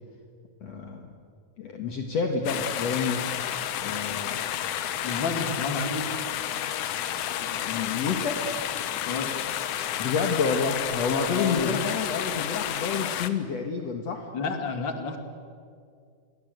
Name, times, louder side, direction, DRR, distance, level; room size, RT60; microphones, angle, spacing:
voice 1, 0.6-1.2 1.6-3.3 3.7-4.4 7.4-8.4 10.0-14.3, left 5 dB, 60° left, 3 dB, 2.5 m, -29 dB
sound 1, 2.5-13.3, left 11 dB, 75° left, 2.5 m, -31 dB
voice 2, 5.0-6.1 9.0-9.3 11.3-11.8 14.3-15.2, left 4 dB, 40° left, 6 dB, 2.7 m, -30 dB
29.5 x 22.5 x 8.1 m, 2.3 s
omnidirectional pair, 3.7 m